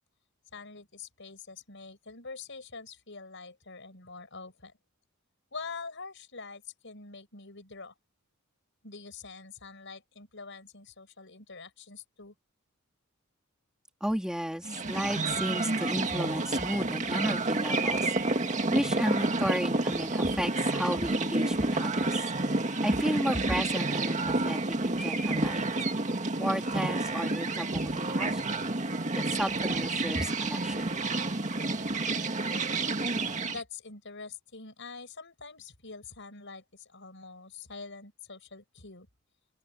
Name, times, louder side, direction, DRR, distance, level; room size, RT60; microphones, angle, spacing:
voice 1, 0.5-4.7 5.5-7.9 8.8-12.3 33.4-39.1, left 4 dB, 60° left, 6.4 m, -45 dB
voice 2, 14.0-22.3 22.8-25.7 26.4-28.6 29.1-30.9, equal, 5° right, 3.2 m, -33 dB
sound 1, 14.6-33.6, right 2 dB, 35° right, 2.0 m, -29 dB
open air
head